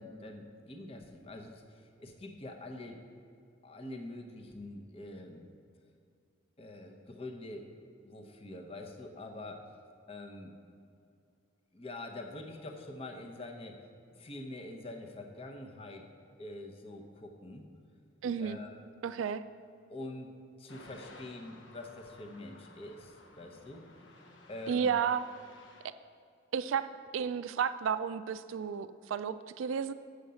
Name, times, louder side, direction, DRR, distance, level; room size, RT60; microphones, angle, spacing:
voice 1, 0.0-3.0 3.6-5.5 6.6-7.8 8.0-9.7 10.1-10.5 11.7-13.8 14.1-16.1 16.4-17.7 18.4-18.7 19.9-23.9 24.5-24.9, left 2 dB, 30° left, 3 dB, 0.8 m, -45 dB
voice 2, 18.2-18.6 19.0-19.4 24.7-25.2 26.5-26.9 27.1-29.9, right 7 dB, 85° right, 13 dB, 0.3 m, -32 dB
sound 1, 20.7-25.9, left 2 dB, 70° left, 0.9 m, -55 dB
7.9 x 6.4 x 6.9 m, 2.4 s
head